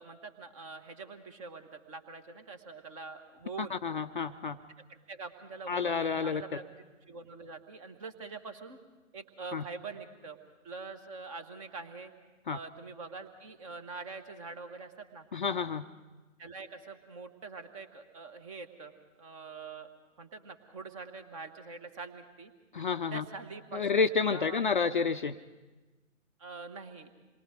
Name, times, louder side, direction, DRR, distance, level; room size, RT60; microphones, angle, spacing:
voice 1, 0.0-3.8 4.9-6.6 7.1-8.8 9.1-10.4 10.6-12.1 12.5-15.3 16.4-18.9 19.2-19.9 20.2-22.5 23.1-23.9 24.3-24.6 26.4-27.1, right 4 dB, 25° right, 8 dB, 1.4 m, -44 dB
voice 2, 3.6-4.6 5.7-6.4 9.5-9.6 12.5-12.6 15.3-15.9 22.7-23.2 23.7-25.4, left 5 dB, 40° left, 8 dB, 0.6 m, -30 dB
27.5 x 22.0 x 5.1 m, 1.2 s
figure-of-eight pair, 135°, 39 cm